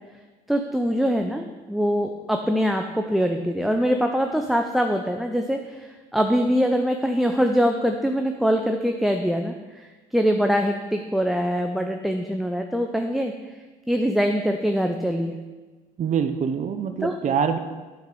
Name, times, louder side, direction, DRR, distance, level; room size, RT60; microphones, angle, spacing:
voice 1, 0.5-13.6 13.9-15.4 17.0-17.1, equal, ahead, 4 dB, 0.6 m, -23 dB
voice 2, 16.0-17.6, right 7 dB, 45° right, 8 dB, 0.7 m, -24 dB
9.3 x 4.8 x 5.4 m, 1.3 s
supercardioid pair, 75°, 18 cm